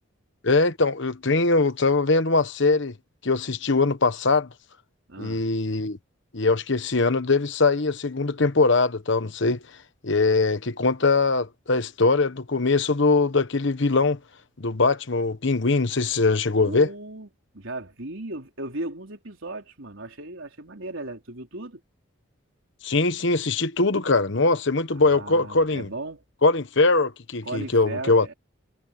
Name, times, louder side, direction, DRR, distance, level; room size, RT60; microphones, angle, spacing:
voice 1, 0.4-2.9 3.2-4.5 5.2-6.0 6.3-9.6 10.0-14.2 14.6-16.9 22.8-25.9 26.4-28.3, left 3 dB, 60° left, 1.2 m, -22 dB
voice 2, 5.1-5.5 16.6-17.3 17.5-21.8 24.9-26.2 27.4-28.3, right 2 dB, 70° right, 3.8 m, -36 dB
head